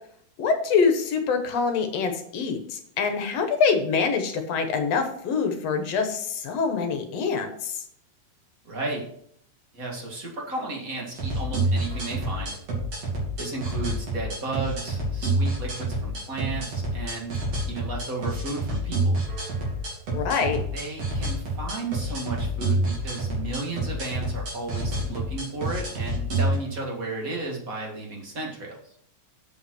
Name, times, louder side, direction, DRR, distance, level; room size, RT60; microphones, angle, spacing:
voice 1, 0.4-7.8 20.1-20.6, left 5 dB, 65° left, 6 dB, 2.1 m, -25 dB
voice 2, 8.6-9.1 9.7-12.6 13.4-17.4 17.7-19.2 20.7-28.9, right 3 dB, 30° right, -1 dB, 2.0 m, -34 dB
sound 1, 11.1-26.6, right 2 dB, 60° right, 4.0 m, -28 dB
7.6 x 5.6 x 6.1 m, 0.67 s
omnidirectional pair, 3.3 m